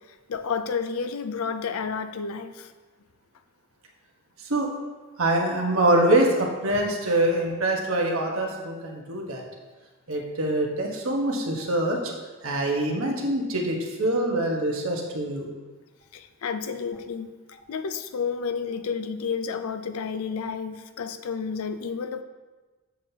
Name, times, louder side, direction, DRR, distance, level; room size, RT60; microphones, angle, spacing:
voice 1, 0.3-2.7 16.1-17.3 17.7-22.2, left 5 dB, 80° left, 10 dB, 0.5 m, -31 dB
voice 2, 5.2-9.4 10.1-12.0 12.4-15.5, right 1 dB, 70° right, 0 dB, 1.3 m, -24 dB
7.4 x 7.2 x 2.9 m, 1.3 s
head